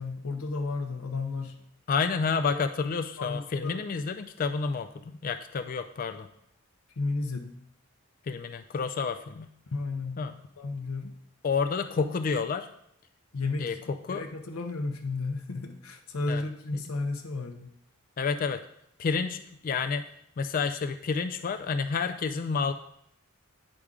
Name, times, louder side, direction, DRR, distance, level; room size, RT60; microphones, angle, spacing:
voice 1, 0.0-1.6 2.5-2.6 3.2-3.8 7.0-7.6 9.7-10.3 10.6-11.2 12.0-12.1 13.3-13.7 14.1-17.7, left 3 dB, 80° left, 4 dB, 0.7 m, -33 dB
voice 2, 1.9-6.3 8.2-9.5 10.2-10.3 11.4-12.7 13.6-14.2 16.3-16.4 18.2-18.6 19.0-20.1 20.4-22.7, left 5 dB, 40° left, 7 dB, 0.3 m, -29 dB
9.7 x 4.9 x 3.6 m, 0.73 s
head